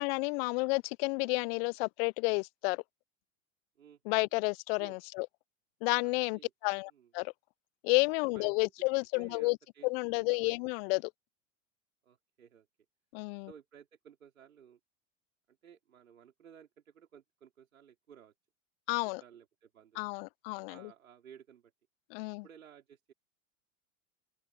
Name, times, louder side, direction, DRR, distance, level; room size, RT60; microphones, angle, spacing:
voice 1, 0.0-2.8 4.1-5.3 5.8-7.3 7.8-9.6 9.8-11.1 13.1-13.5 18.9-19.2 20.0-20.7 22.1-22.4, left 29 dB, 50° left, 0.5 m, -31 dB
voice 2, 3.8-4.3 4.8-5.0 6.0-6.5 6.9-7.1 8.3-8.7 9.1-9.9 10.2-10.6 12.0-12.7 13.5-14.8 15.5-18.3 19.2-20.1 20.7-21.7 22.4-23.1, right 8 dB, 85° right, 3.9 m, -57 dB
open air
hypercardioid pair, 90°, 40 cm